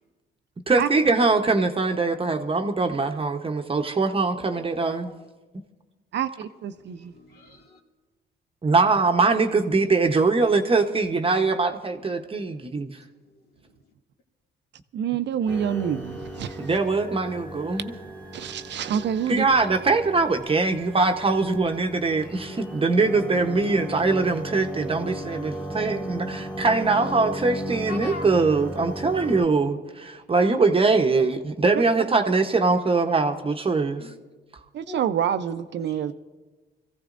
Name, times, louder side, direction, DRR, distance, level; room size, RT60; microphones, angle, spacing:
voice 1, 0.7-5.1 5.5-5.6 8.6-13.0 16.6-18.0 19.3-34.0, right 3 dB, 30° right, 1.0 m, -22 dB
voice 2, 4.5-5.3 6.8-7.8 12.9-13.5 13.8-13.9 27.9-28.3 30.7-30.8 32.6-33.6 34.0-34.1 34.9-35.0 35.8-36.1, left 3 dB, 55° left, 2.2 m, -43 dB
voice 3, 6.1-7.1 14.9-16.6 18.3-19.4 34.7-36.1, right 8 dB, 60° right, 0.6 m, -27 dB
sound 1, 15.5-29.5, equal, 5° left, 1.6 m, -36 dB
25.0 x 15.5 x 2.6 m
cardioid pair, 90°, 20 cm